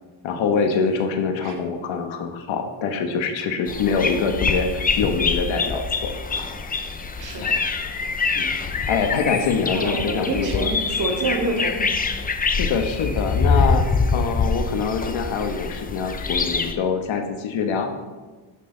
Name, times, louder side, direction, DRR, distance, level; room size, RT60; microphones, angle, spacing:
voice 1, 0.2-6.1 7.4-7.6 8.3-8.5 8.9-10.7 12.6-13.9 14.1-17.9, left 5 dB, 65° left, 6 dB, 1.3 m, -24 dB
sound 1, 3.7-16.7, left 4 dB, 20° left, 0.5 m, -25 dB
voice 2, 9.7-11.9, right 2 dB, 40° right, 0 dB, 2.1 m, -27 dB
12.0 x 6.7 x 3.9 m, 1.3 s
cardioid pair, 130°, 49 cm